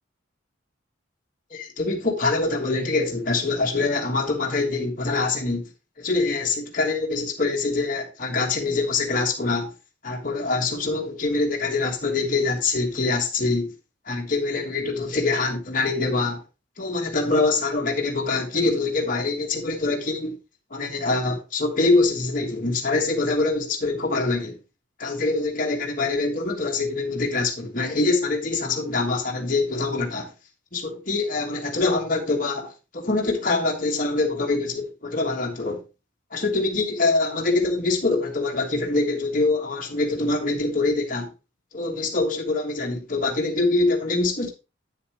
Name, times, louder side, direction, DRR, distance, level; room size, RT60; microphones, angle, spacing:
voice 1, 1.5-5.7 6.0-9.7 10.0-13.7 14.1-16.4 16.8-20.4 20.7-24.6 25.0-30.3 30.7-35.8 36.3-41.3 41.7-44.5, left 3 dB, 45° left, 1.5 m, -24 dB
8.9 x 7.0 x 3.1 m
head